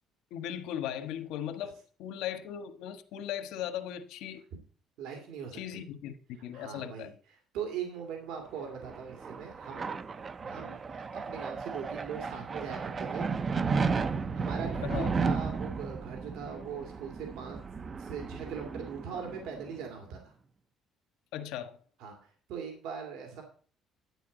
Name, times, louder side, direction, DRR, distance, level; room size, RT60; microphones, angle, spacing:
voice 1, 0.3-4.4 5.5-7.1 14.9-15.1 21.3-21.7, left 10 dB, 75° left, 1.4 m, -38 dB
voice 2, 5.0-5.8 6.5-7.1 7.5-10.0 10.4-13.3 14.3-17.6 18.0-20.3 22.0-22.2 22.5-23.4, right 7 dB, 80° right, 2.5 m, -40 dB
sound 1, 8.6-19.9, right 5 dB, 25° right, 0.4 m, -34 dB
11.0 x 9.7 x 4.0 m
cardioid pair, 180°, 0 cm